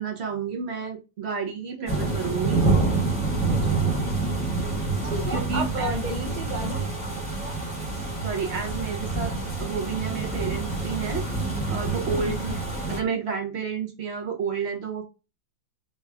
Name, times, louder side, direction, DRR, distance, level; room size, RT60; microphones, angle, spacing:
voice 1, 0.0-2.6 5.3-6.0 7.2-7.4 8.2-9.3 9.6-11.2 11.7-15.0, right 6 dB, 55° right, 1 dB, 0.7 m, -31 dB
voice 2, 1.8-2.1 3.5-3.9 5.1-6.9 12.0-12.6, right 1 dB, 90° right, 3 dB, 0.4 m, -33 dB
sound 1, 1.9-13.0, right 3 dB, 5° right, 1.0 m, -27 dB
3.4 x 3.1 x 3.4 m, 0.29 s
omnidirectional pair, 2.1 m